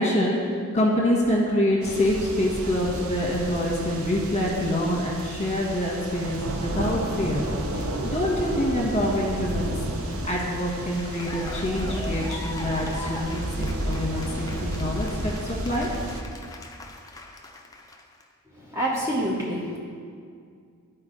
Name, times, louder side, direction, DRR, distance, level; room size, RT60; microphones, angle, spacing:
voice 1, 0.0-7.4 8.0-9.7 10.0-15.3 15.6-15.9, left 1 dB, 30° left, -3 dB, 1.5 m, -26 dB
sound 1, 1.8-16.2, right 1 dB, 70° right, 0.7 m, -32 dB
Cheering / Applause, 10.7-18.2, left 2 dB, 15° left, 0.5 m, -41 dB
voice 2, 18.5-19.8, right 1 dB, 15° right, -4 dB, 0.9 m, -27 dB
12.0 x 4.6 x 3.8 m, 2.2 s
head